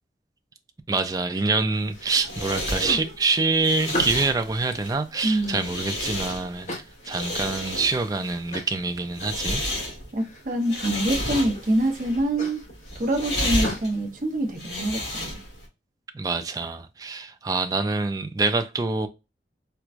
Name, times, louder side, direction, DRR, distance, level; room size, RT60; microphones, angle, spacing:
voice 1, 0.9-6.7 7.1-9.6 16.1-19.1, right 3 dB, 20° right, 0.3 m, -25 dB
sound 1, 1.3-2.1 2.4-4.4 4.9-6.1 6.7-7.5 7.9-8.0 8.5-8.8 9.2-9.9 10.2-10.7 11.1-11.6 12.0-13.9, left 1 dB, 40° left, 0.9 m, -37 dB
sound 2, 1.8-15.7, left 1 dB, 70° left, 2.1 m, -32 dB
voice 2, 5.2-5.7 10.1-12.6 13.0-15.4, right 1 dB, 45° right, 0.8 m, -25 dB
4.4 x 2.2 x 2.4 m
head